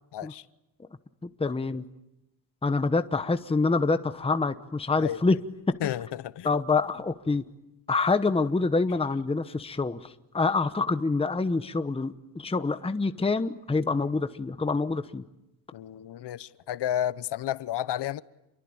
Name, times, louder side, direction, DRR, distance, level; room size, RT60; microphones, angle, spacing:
voice 1, 0.1-0.4 5.0-5.2 5.8-6.5 15.7-18.2, left 11 dB, 80° left, 0.9 m, -31 dB
voice 2, 1.2-1.8 2.6-5.4 5.7-5.8 6.4-7.4 7.9-15.2, left 3 dB, 15° left, 1.0 m, -26 dB
29.0 x 23.0 x 8.8 m
cardioid pair, 125°, 41 cm